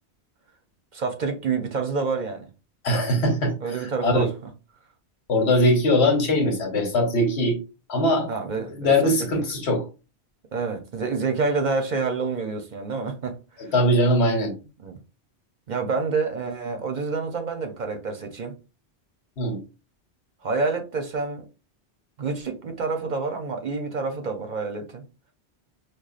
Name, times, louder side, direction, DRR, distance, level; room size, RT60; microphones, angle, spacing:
voice 1, 0.9-2.5 3.6-4.3 8.3-9.5 10.5-13.7 14.8-15.0 15.7-18.5 20.4-21.4 22.2-25.0, right 4 dB, 50° right, 0.7 m, -28 dB
voice 2, 2.8-3.5 3.8-4.3 5.3-7.6 7.9-8.3 8.5-9.8 13.7-14.5 19.4-19.6, left 1 dB, 85° left, 1.3 m, -21 dB
4.8 x 2.4 x 2.4 m
omnidirectional pair, 1.1 m